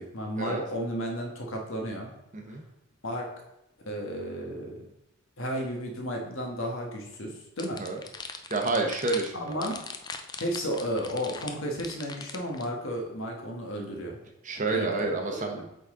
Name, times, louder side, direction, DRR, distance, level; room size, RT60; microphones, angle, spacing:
voice 1, 0.0-2.1 3.0-3.3 3.8-4.9 5.4-7.8 9.3-9.8 10.4-14.2 14.7-15.6, equal, 65° left, 1 dB, 1.4 m, -33 dB
voice 2, 2.3-2.6 7.8-8.0 8.5-9.7 14.4-15.6, right 3 dB, 35° right, 3 dB, 0.8 m, -29 dB
sound 1, 7.6-12.7, left 5 dB, 20° left, 0.4 m, -40 dB
8.2 x 4.0 x 3.7 m, 0.87 s
head